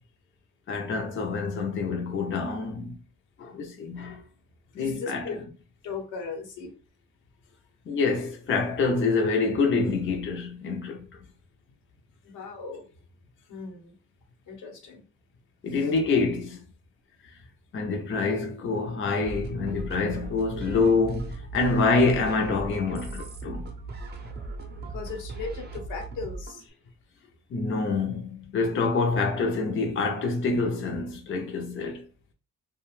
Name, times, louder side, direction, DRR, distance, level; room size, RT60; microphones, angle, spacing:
voice 1, 0.7-3.0 3.4-4.2 4.7-5.3 7.9-11.1 15.6-16.6 17.7-23.7 27.5-32.0, left 4 dB, 40° left, 0.6 m, -26 dB
voice 2, 4.8-5.4 5.8-6.7 12.2-12.9 13.5-14.0 14.5-15.0 15.7-15.9 24.8-26.6, left 4 dB, 80° left, 0.9 m, -37 dB
sound 1, 19.2-26.6, right 2 dB, 35° right, 0.6 m, -38 dB
2.4 x 2.2 x 3.1 m
cardioid pair, 90°, 30 cm